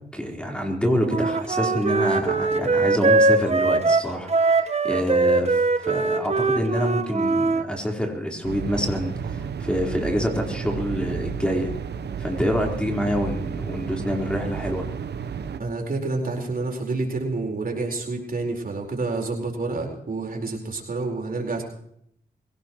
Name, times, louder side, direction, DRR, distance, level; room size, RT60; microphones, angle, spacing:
voice 1, 0.1-11.7 12.2-14.8, equal, 5° left, 0 dB, 4.2 m, -27 dB
Wind instrument woodwind instrument, 1.1-7.6, right 3 dB, 40° right, 1.3 m, -21 dB
sound 1, 8.4-15.6, right 7 dB, 75° right, 1.0 m, -32 dB
voice 2, 15.6-21.6, right 3 dB, 55° right, 1 dB, 4.6 m, -28 dB
23.5 x 17.5 x 3.1 m, 0.70 s
cardioid pair, 70°, 17 cm